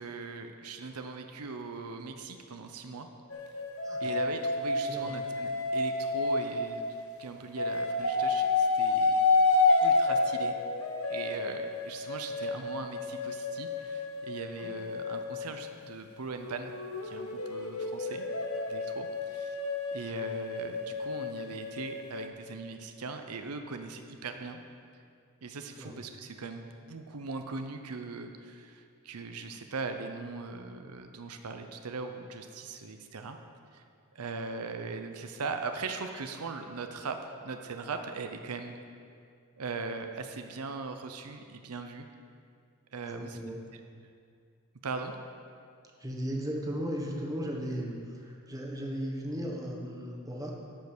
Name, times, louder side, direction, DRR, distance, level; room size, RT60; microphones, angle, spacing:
voice 1, 0.0-3.1 4.0-6.8 7.2-9.2 9.8-10.5 11.1-16.7 17.0-18.3 18.7-19.6 19.9-24.6 25.4-33.4 33.7-33.8 34.1-38.8 39.6-42.1 42.9-43.6 44.8-45.1, right 4 dB, 90° right, 6 dB, 0.7 m, -40 dB
sound 1, 3.3-7.1 7.6-15.7 16.4-22.3, left 3 dB, 65° left, 1.0 m, -30 dB
voice 2, 42.9-43.6 46.0-50.5, equal, 15° right, -1 dB, 1.2 m, -36 dB
13.0 x 5.4 x 6.1 m, 2.3 s
head